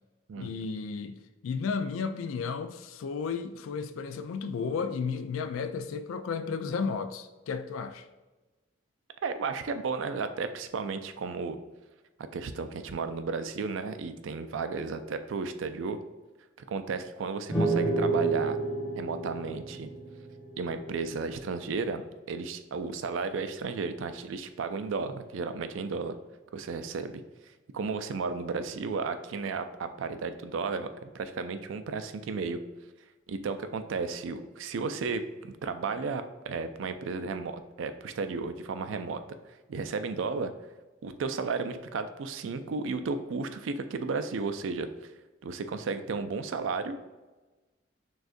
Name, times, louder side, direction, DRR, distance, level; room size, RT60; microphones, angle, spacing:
voice 1, 0.4-8.1, left 5 dB, 90° left, 0.4 m, -33 dB
voice 2, 9.2-11.6 12.3-16.0 16.7-18.6 19.0-19.9 20.6-26.1 26.5-27.2 27.7-32.6 33.3-39.2 39.7-40.5 41.0-44.9 45.4-47.0, right 4 dB, 75° right, 0.4 m, -33 dB
sound 1, 17.5-21.1, right 3 dB, 10° left, 1.1 m, -30 dB
6.2 x 2.3 x 2.5 m
head